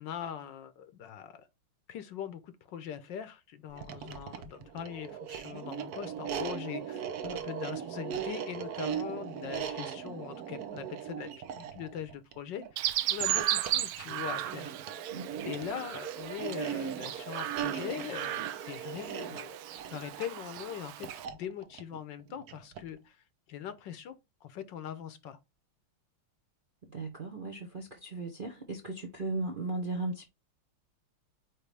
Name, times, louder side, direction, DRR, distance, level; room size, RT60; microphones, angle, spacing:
voice 1, 0.0-1.5 1.9-12.8 13.1-14.7 15.4-23.2 23.5-24.1 24.4-25.4, left 9 dB, 70° left, 1.3 m, -41 dB
sound 1, 3.7-23.0, right 9 dB, 60° right, 1.1 m, -39 dB
Chirp tweet, 12.8-21.3, right 13 dB, 80° right, 1.4 m, -35 dB
voice 2, 15.1-15.5 26.8-30.3, right 2 dB, 45° right, 0.7 m, -37 dB
9.2 x 3.1 x 3.3 m
omnidirectional pair, 2.3 m